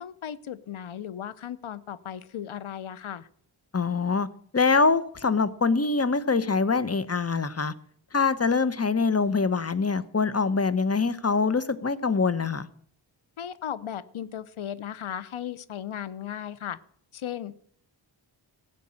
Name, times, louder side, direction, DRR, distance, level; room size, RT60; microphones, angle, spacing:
voice 1, 0.0-3.3 13.4-16.8 17.1-17.6, left 9 dB, 90° left, 17 dB, 0.7 m, -36 dB
voice 2, 3.7-4.3 4.5-7.7 8.1-12.7, left 4 dB, 30° left, 15 dB, 0.7 m, -24 dB
15.0 x 5.3 x 8.6 m, 0.63 s
wide cardioid pair, 65°, 47 cm